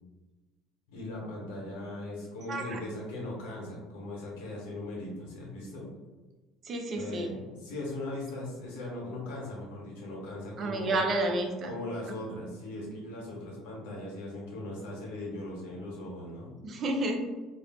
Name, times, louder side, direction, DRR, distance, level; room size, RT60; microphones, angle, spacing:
voice 1, 0.9-5.9 6.9-11.0 11.6-16.5, left 1 dB, 85° left, -3 dB, 1.0 m, -39 dB
voice 2, 2.5-2.8 6.6-7.3 10.6-11.7 16.6-17.2, right 2 dB, 40° right, 3 dB, 0.5 m, -30 dB
2.4 x 2.3 x 3.5 m, 1.2 s
supercardioid pair, 95°, 0 cm